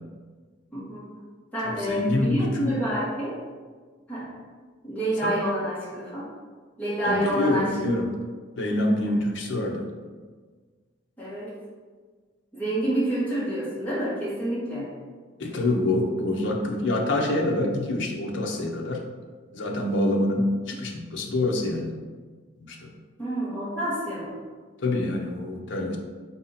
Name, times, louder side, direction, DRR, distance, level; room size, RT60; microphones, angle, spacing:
voice 1, 0.7-1.1 1.5-3.4 4.1-4.2 4.8-6.3 6.8-7.8 9.0-9.1 11.2-11.5 12.5-14.9 23.2-24.3, right 1 dB, 10° left, -10 dB, 1.4 m, -28 dB
voice 2, 1.8-2.7 5.2-5.3 7.0-8.1 8.6-9.9 15.4-19.0 19.5-21.9 22.6-22.9 24.8-26.0, left 1 dB, 70° left, 1 dB, 0.6 m, -26 dB
4.1 x 2.7 x 4.0 m, 1.5 s
head